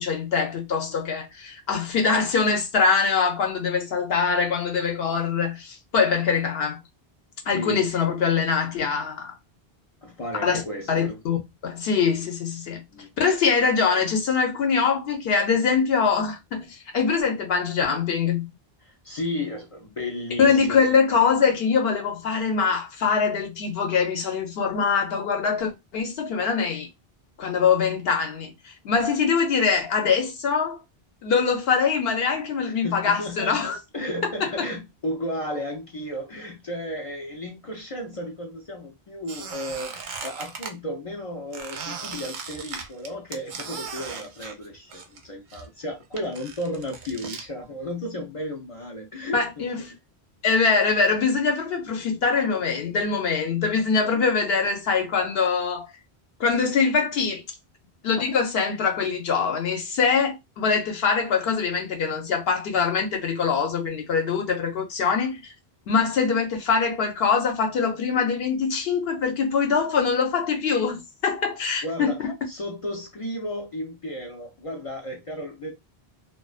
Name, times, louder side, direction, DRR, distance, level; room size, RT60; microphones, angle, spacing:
voice 1, 0.0-6.8 7.5-9.4 10.4-10.6 10.9-11.4 11.6-12.8 13.2-18.5 20.4-26.9 27.4-30.8 31.2-33.8 34.2-34.5 49.3-49.8 50.4-55.9 56.4-57.4 58.0-65.4 65.9-72.3, left 5 dB, 70° left, 0.8 m, -23 dB
voice 2, 7.5-7.9 10.0-11.2 12.9-13.1 18.8-20.9 32.6-33.6 33.9-49.7 54.0-54.2 71.8-75.7, left 1 dB, 55° left, 0.4 m, -34 dB
Squeak, 39.3-40.7 41.5-45.2 45.5-47.5, right 5 dB, 60° right, 0.6 m, -37 dB
2.4 x 2.2 x 2.3 m
omnidirectional pair, 1.1 m